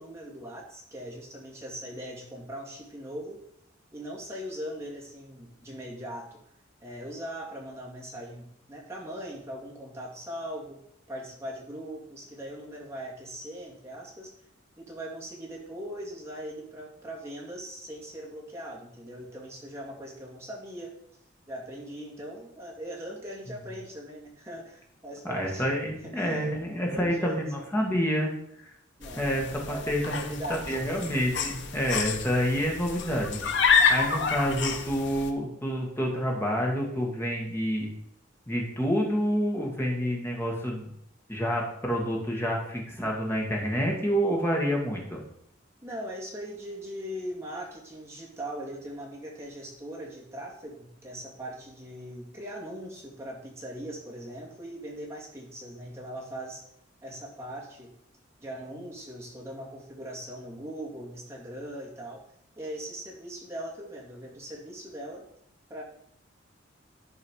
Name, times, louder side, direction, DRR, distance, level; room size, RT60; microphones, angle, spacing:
voice 1, 0.0-3.4 3.9-6.4 6.8-10.8 11.1-14.3 14.8-20.9 21.5-25.7 26.1-26.5 26.8-27.4 29.0-31.1 45.8-56.7 57.0-57.9 58.4-62.2 62.6-65.2 65.7-65.8, equal, 15° right, -4 dB, 2.3 m, -40 dB
voice 2, 25.2-28.3 28.6-28.7 29.2-33.4 33.9-37.9 38.5-40.9 41.3-45.2, equal, 15° left, -1 dB, 1.8 m, -28 dB
sound 1, 29.0-35.3, left 5 dB, 65° left, 0.9 m, -28 dB
11.5 x 4.8 x 4.7 m, 0.71 s
head